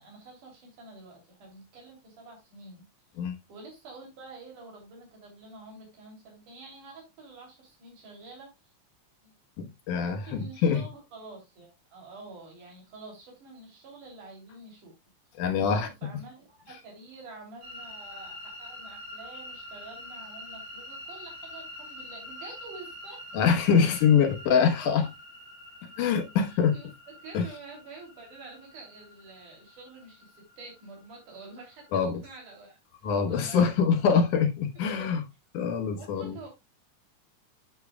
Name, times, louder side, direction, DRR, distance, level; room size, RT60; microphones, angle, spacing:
voice 1, 0.0-2.9 3.5-8.5 9.2-9.3 9.9-14.9 15.6-23.4 24.1-24.2 24.5-25.0 26.7-33.7 35.0-35.1 36.0-36.5, right 3 dB, 85° right, 4.7 m, -48 dB
voice 2, 9.6-10.8 15.4-15.9 23.3-25.1 25.8-26.8 27.3-27.5 31.9-32.2 33.0-35.2 35.5-36.4, left 6 dB, 85° left, 2.8 m, -24 dB
sound 1, 17.6-31.9, left 1 dB, 40° right, 3.9 m, -46 dB
11.0 x 7.0 x 2.3 m
omnidirectional pair, 3.5 m